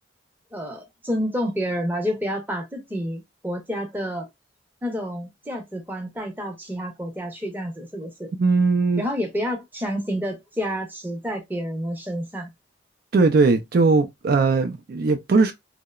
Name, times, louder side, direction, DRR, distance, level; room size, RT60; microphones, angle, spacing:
voice 1, 0.5-4.3 4.8-8.3 9.0-12.5, equal, 10° right, 0.6 m, -29 dB
voice 2, 8.4-9.0 13.1-15.5, right 3 dB, 55° right, 0.3 m, -19 dB
2.8 x 2.0 x 2.2 m
head